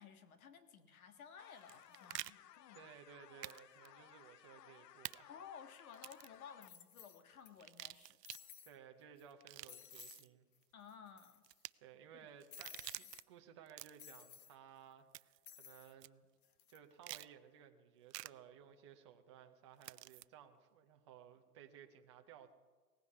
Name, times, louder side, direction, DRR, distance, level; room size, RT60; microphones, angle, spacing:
voice 1, 0.0-2.8 5.3-8.2 10.7-11.4 12.1-12.3, left 7 dB, 60° left, 8 dB, 1.7 m, -56 dB
sound 1, 1.4-6.7, left 11 dB, 90° left, 0.8 m, -61 dB
sound 2, 1.5-2.3 3.4-3.6 3.8-3.9 5.0-5.2 5.9-6.4 7.6-8.4 9.3-10.3 11.4-11.7 12.4-13.2 13.7-14.1 15.1-15.5 16.0-16.1 17.0-17.3 18.1-18.3 19.8-20.2, right 14 dB, 85° right, 0.6 m, -49 dB
voice 2, 2.7-5.3 8.6-10.5 11.8-16.3 16.7-22.5, right 8 dB, 20° right, 4 dB, 0.6 m, -59 dB
sound 3, 5.8-5.9 6.6-7.5 7.8-7.9 8.3-8.8 9.2-9.3 9.7-10.3 10.6-10.7 10.9-11.6 12.5-13.2 14.0-14.6 15.5-15.9 16.4-16.8, left 9 dB, 35° left, 0.9 m, -56 dB
18.5 x 15.5 x 4.8 m, 1.4 s
hypercardioid pair, 160°, 48 cm